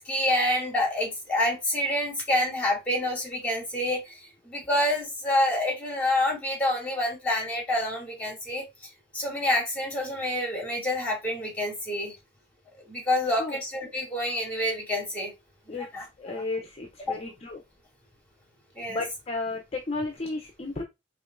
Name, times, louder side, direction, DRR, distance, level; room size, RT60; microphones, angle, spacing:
voice 1, 0.0-4.1 4.4-8.6 9.1-12.2 12.9-15.3 15.7-16.0 16.4-16.5 17.1-17.2 18.8-19.0, left 1 dB, 10° left, -1 dB, 2.2 m, -27 dB
voice 2, 16.2-17.6 18.9-20.8, left 3 dB, 35° left, 2 dB, 0.6 m, -33 dB
4.9 x 3.0 x 2.5 m, 0.22 s
head